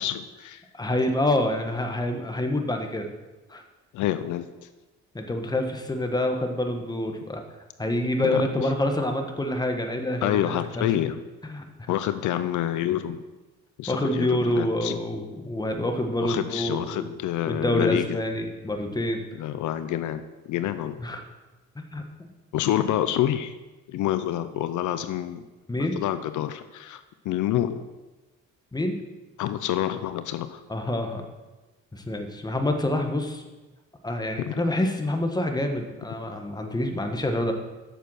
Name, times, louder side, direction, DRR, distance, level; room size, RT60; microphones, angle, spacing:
voice 1, 0.0-0.6 3.9-4.7 8.2-8.4 10.2-11.2 11.9-13.2 13.8-14.3 14.6-15.0 16.2-18.2 19.4-21.0 22.5-23.5 23.9-25.4 25.9-27.8 29.4-30.6 34.4-34.5, left 12 dB, 75° left, 11 dB, 0.6 m, -27 dB
voice 2, 0.7-3.1 3.5-3.6 5.1-7.4 7.8-10.9 11.4-11.9 13.9-17.1 17.5-19.2 21.0-21.2 21.7-22.0 25.7-25.9 28.7-29.0 30.7-31.2 31.9-33.4 34.0-37.5, left 1 dB, 15° left, 4 dB, 1.3 m, -27 dB
7.8 x 6.7 x 6.3 m, 1.1 s
cardioid pair, 90°, 30 cm